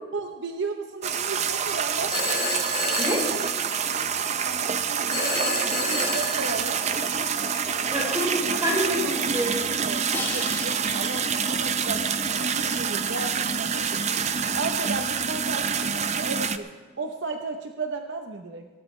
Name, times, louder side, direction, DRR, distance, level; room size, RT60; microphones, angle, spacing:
voice 1, 0.1-2.2 4.4-6.8 9.8-14.1 14.5-16.7 17.0-18.7, right 3 dB, 65° right, 5 dB, 0.8 m, -34 dB
sound 1, 1.0-16.6, right 6 dB, 35° right, 0.5 m, -27 dB
Telephone, 2.1-4.0 5.1-7.0, left 2 dB, 35° left, 4.6 m, -30 dB
voice 2, 7.9-9.8, equal, 20° right, -3 dB, 4.7 m, -27 dB
Crash cymbal, 10.1-12.1, left 2 dB, 10° left, 1.5 m, -37 dB
19.5 x 16.5 x 3.2 m, 1.4 s
head